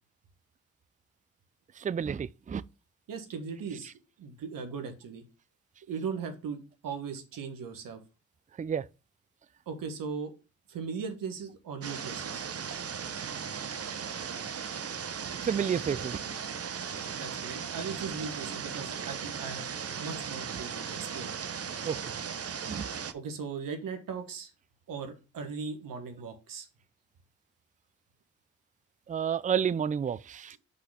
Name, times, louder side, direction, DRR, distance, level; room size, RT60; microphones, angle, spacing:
voice 1, 1.8-2.6 8.6-8.9 15.4-16.2 21.9-22.0 22.7-22.8 29.1-30.6, right 7 dB, 25° right, 0.4 m, -30 dB
voice 2, 3.1-3.9 4.2-5.2 5.9-8.0 9.7-10.3 10.7-12.4 17.1-19.7 20.0-21.3 23.1-24.5 24.9-26.7, right 5 dB, 75° right, 1.5 m, -38 dB
sound 1, 11.8-23.1, right 7 dB, 45° right, 0.9 m, -37 dB
5.7 x 4.0 x 5.5 m
supercardioid pair, 45°, 34 cm